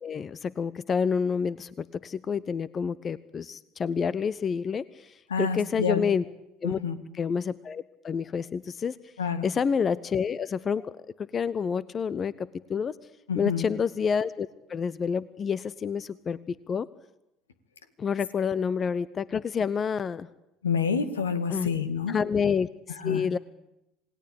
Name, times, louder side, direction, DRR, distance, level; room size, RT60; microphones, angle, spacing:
voice 1, 0.0-6.2 6.6-6.8 7.1-9.0 9.4-10.9 11.2-12.9 13.3-16.9 18.0-20.3 21.5-21.7 22.1-23.4, left 6 dB, 35° left, 18 dB, 0.9 m, -28 dB
voice 2, 5.3-6.0 6.6-7.0 9.2-9.4 13.3-13.7 20.6-22.2 23.0-23.2, left 6 dB, 80° left, 11 dB, 2.0 m, -28 dB
27.5 x 20.5 x 8.7 m, 0.88 s
figure-of-eight pair, 65°, 0 cm